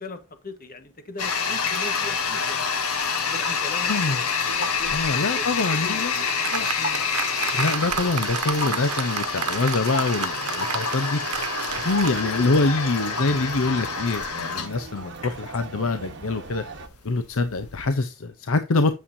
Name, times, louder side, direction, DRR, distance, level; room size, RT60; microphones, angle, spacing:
voice 1, 0.0-2.9 3.3-4.1 4.5-6.0 6.8-7.0, left 2 dB, 40° left, 1.4 m, -39 dB
Toilet flush, 1.2-17.9, left 5 dB, 85° left, 1.6 m, -27 dB
voice 2, 3.9-4.2 4.9-6.2 6.5-6.7 7.5-11.2 11.8-16.6 17.0-18.9, left 3 dB, 70° left, 0.7 m, -25 dB
Applause, 5.7-13.2, right 7 dB, 80° right, 1.0 m, -31 dB
sound 1, 11.7-16.9, right 4 dB, 55° right, 1.2 m, -39 dB
8.6 x 7.2 x 2.7 m
head